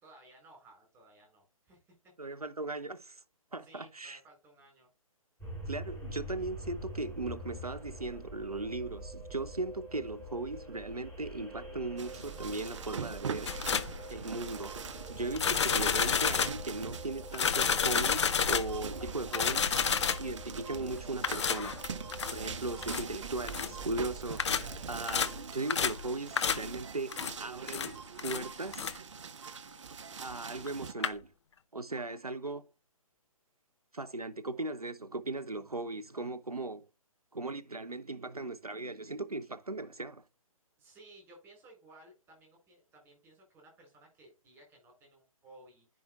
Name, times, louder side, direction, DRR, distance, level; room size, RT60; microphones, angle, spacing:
voice 1, 0.0-2.1 3.6-4.9 40.8-46.0, right 2 dB, 15° right, 3.9 m, -58 dB
voice 2, 2.2-3.2 3.5-4.2 5.7-13.6 14.1-14.8 15.1-19.7 20.2-21.8 22.3-29.0 30.2-31.3 31.7-32.7 33.9-36.9 37.3-40.2, right 2 dB, 90° right, 0.7 m, -38 dB
sound 1, 5.4-25.4, right 1 dB, 10° left, 5.0 m, -45 dB
sound 2, 12.0-30.9, right 6 dB, 55° right, 0.6 m, -43 dB
sound 3, 13.5-14.0 15.3-16.7 17.3-18.8 19.3-20.3 21.2-22.4 22.8-23.0 23.5-23.7 24.4-24.7 25.1-25.4 25.7-26.1 26.4-26.7 27.1-27.3 27.7-27.9 28.2-28.4 28.7-28.9 30.7-30.8 31.0-31.1, left 7 dB, 50° left, 0.6 m, -30 dB
10.5 x 5.4 x 2.4 m
figure-of-eight pair, 135°, 19 cm